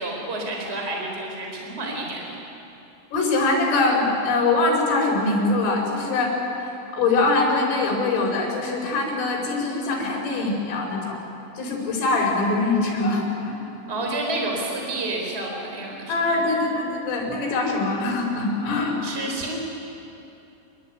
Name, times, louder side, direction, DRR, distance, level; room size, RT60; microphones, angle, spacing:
voice 1, 0.0-2.4 13.9-16.4 19.0-19.6, right 2 dB, 15° right, 0 dB, 4.2 m, -30 dB
voice 2, 3.1-11.2 11.6-13.6 16.1-19.0, left 3 dB, 80° left, -1 dB, 7.6 m, -23 dB
26.5 x 21.5 x 9.6 m, 2.8 s
omnidirectional pair, 5.7 m